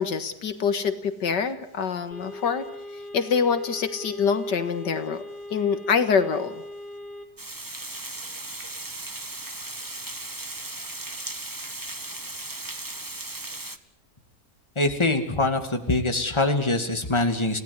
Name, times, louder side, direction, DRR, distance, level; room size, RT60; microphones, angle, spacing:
voice 1, 0.0-2.6 3.1-5.2 5.5-6.6, left 6 dB, 80° left, 9 dB, 2.2 m, -25 dB
sound 1, 2.1-7.3, left 1 dB, 55° left, 4.3 m, -40 dB
Water, 7.4-13.8, right 2 dB, 15° right, 1.1 m, -36 dB
voice 2, 14.8-17.6, left 2 dB, 15° left, 5 dB, 2.6 m, -24 dB
30.0 x 17.5 x 9.8 m, 0.76 s
omnidirectional pair, 1.8 m